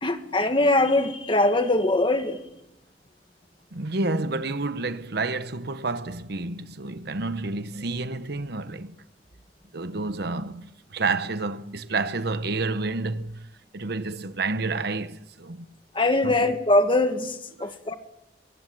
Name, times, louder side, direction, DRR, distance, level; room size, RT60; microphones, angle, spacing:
voice 1, 0.0-2.4 15.9-17.9, left 2 dB, 30° left, 1.8 m, -22 dB
voice 2, 3.7-8.9 9.7-13.5 13.7-15.7 16.2-16.4 17.6-17.8, right 3 dB, 65° right, 1.1 m, -29 dB
24.0 x 23.5 x 7.9 m
head